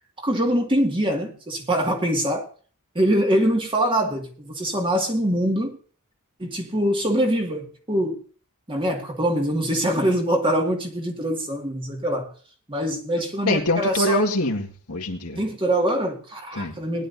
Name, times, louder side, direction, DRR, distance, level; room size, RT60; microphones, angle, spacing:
voice 1, 0.2-2.5 2.9-5.8 6.4-8.2 8.7-12.3 12.7-14.3 15.4-17.1, right 1 dB, 25° right, 2.2 m, -23 dB
voice 2, 13.4-15.4 16.5-16.8, left 1 dB, 75° left, 1.9 m, -24 dB
20.0 x 11.0 x 2.7 m
head